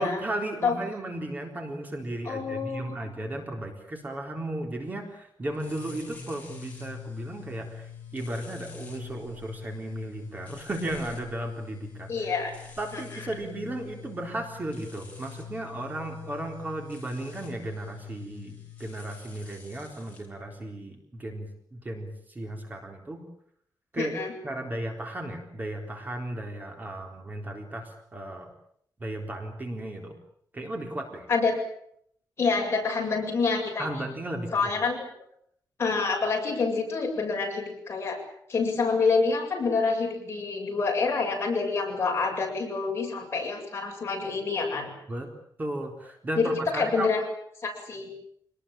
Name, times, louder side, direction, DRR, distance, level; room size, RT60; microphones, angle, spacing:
voice 1, 0.0-12.4 12.8-23.2 23.9-24.1 24.4-28.5 29.0-30.1 30.5-31.3 33.8-34.7 45.1-45.3 45.6-47.1, right 1 dB, 25° right, 2 dB, 3.9 m, -35 dB
voice 2, 2.2-3.0 12.1-12.5 12.9-13.0 24.0-24.3 31.3-31.6 32.4-34.0 34.5-35.0 35.8-38.2 38.5-44.9 46.4-47.2 47.6-48.1, left 4 dB, 35° left, 0 dB, 7.9 m, -27 dB
sound 1, 5.5-20.3, left 7 dB, 20° left, 5.3 m, -45 dB
26.5 x 20.0 x 9.0 m, 0.68 s
wide cardioid pair, 180°, 7 cm